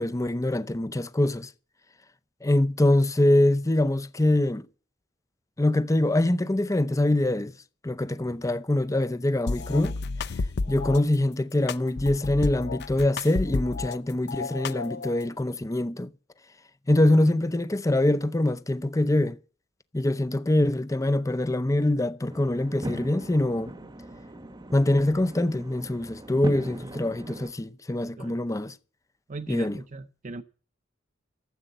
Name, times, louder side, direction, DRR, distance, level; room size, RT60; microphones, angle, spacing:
voice 1, 0.0-1.5 2.4-4.7 5.6-7.5 7.8-9.9 10.7-16.1 16.9-19.4 19.9-23.7 24.7-28.7 29.5-29.8, left 1 dB, 15° left, 0.6 m, -24 dB
sound 1, 9.5-11.0 11.7-14.0 14.3-15.3, left 3 dB, 60° left, 0.6 m, -31 dB
sound 2, 22.3-27.5, right 1 dB, 20° right, 0.9 m, -39 dB
voice 2, 29.3-30.4, right 3 dB, 40° right, 0.7 m, -39 dB
14.0 x 7.9 x 7.7 m
head